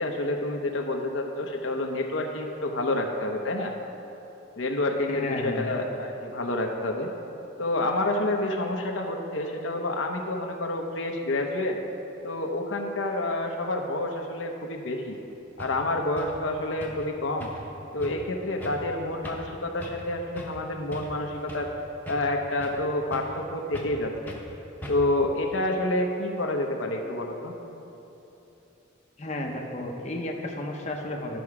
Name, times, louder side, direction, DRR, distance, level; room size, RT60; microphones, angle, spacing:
voice 1, 0.0-3.7 4.6-7.1 7.6-11.8 12.2-15.2 15.6-17.5 17.9-21.7 22.1-24.4 24.9-27.5, left 2 dB, 70° left, 2 dB, 0.8 m, -28 dB
voice 2, 5.1-5.7 29.2-31.4, left 1 dB, 35° left, 0 dB, 0.8 m, -32 dB
sound 1, 15.1-15.2 15.6-15.8 16.2-16.4 16.8-17.1 17.4-17.7 18.0-18.2 18.6-18.9 19.2-19.5 19.8-20.1 20.4-20.6 20.9-21.7 22.1-22.8 23.1-23.4 23.7-24.0 24.3-24.5 24.8-25.2, left 1 dB, 10° left, 0.9 m, -41 dB
11.5 x 6.2 x 4.8 m, 3.0 s
head